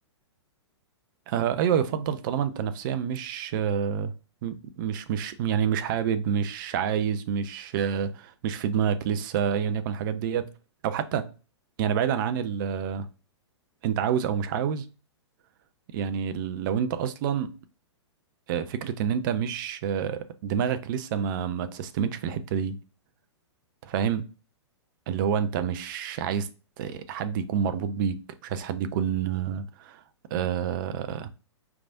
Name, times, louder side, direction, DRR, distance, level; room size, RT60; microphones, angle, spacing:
voice 1, 1.3-4.1 4.4-10.5 10.8-11.3 11.8-13.1 13.8-14.9 15.9-17.6 18.5-22.8 23.8-24.2 25.1-26.5 26.8-30.0 30.3-31.3, right 8 dB, 45° right, 0.6 m, -28 dB
4.9 x 3.5 x 2.6 m
figure-of-eight pair, 110°, 15 cm